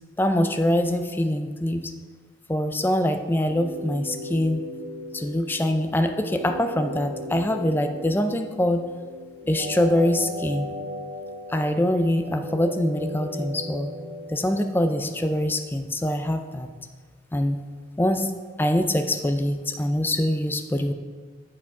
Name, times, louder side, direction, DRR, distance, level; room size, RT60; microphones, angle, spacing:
voice 1, 0.2-1.9 2.5-4.6 5.1-8.8 9.5-10.7 11.5-14.0 14.3-16.7 17.3-17.7 18.0-18.3 18.6-20.9, left 1 dB, 10° left, 7 dB, 0.3 m, -24 dB
sound 1, 3.4-15.4, equal, 45° right, 0.9 m, -37 dB
7.9 x 4.9 x 4.7 m, 1.5 s
head